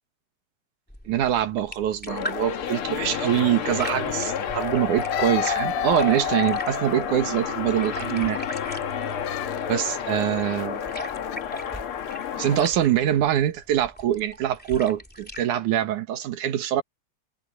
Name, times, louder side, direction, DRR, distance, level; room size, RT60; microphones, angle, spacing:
sound 1, 0.9-15.5, equal, 5° left, 2.6 m, -40 dB
voice 1, 1.1-8.4 9.7-10.8 12.3-16.8, right 11 dB, 80° right, 2.9 m, -24 dB
sound 2, 2.1-12.7, left 8 dB, 55° left, 1.9 m, -29 dB
sound 3, 5.1-6.3 9.2-9.6 10.2-10.6 11.3-11.4, left 15 dB, 75° left, 2.0 m, -36 dB
omnidirectional pair, 3.4 m